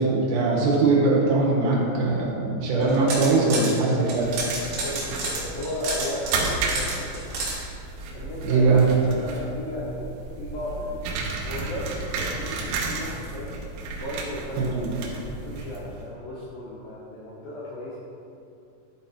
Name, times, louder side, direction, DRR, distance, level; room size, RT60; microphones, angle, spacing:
voice 1, 0.0-4.2 8.4-8.8 14.7-14.9, right 3 dB, 75° right, -4 dB, 3.8 m, -21 dB
voice 2, 2.7-4.4 4.8-7.3 8.1-8.7 9.0-13.5 14.0-18.0, left 1 dB, 90° left, -7 dB, 2.0 m, -35 dB
sound 1, 2.8-3.7 4.1-7.5, right 3 dB, 60° right, 2.7 m, -30 dB
sound 2, 4.0-16.1, right 3 dB, 90° right, 3.6 m, -33 dB
12.0 x 4.2 x 4.3 m, 2.6 s
omnidirectional pair, 5.9 m